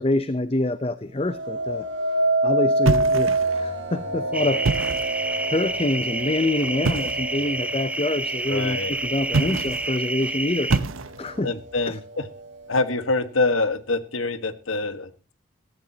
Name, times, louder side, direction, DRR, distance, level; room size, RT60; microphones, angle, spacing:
voice 1, 0.0-1.8 2.4-4.6 5.5-10.7 11.2-11.5 11.9-12.0, left 2 dB, 30° left, 13 dB, 0.6 m, -26 dB
sound 1, 1.2-10.4 10.9-11.4, right 2 dB, 65° right, 2.0 m, -27 dB
sound 2, 2.8-3.7 4.5-5.2 6.8-7.3 9.3-9.9 10.7-11.4, right 3 dB, 85° right, 0.8 m, -25 dB
sound 3, 4.3-10.8, right 2 dB, 5° right, 0.7 m, -29 dB
voice 2, 8.5-8.9 11.4-12.3 12.7-15.1, left 3 dB, 85° left, 11 dB, 1.5 m, -25 dB
18.5 x 14.5 x 2.9 m, 0.35 s
head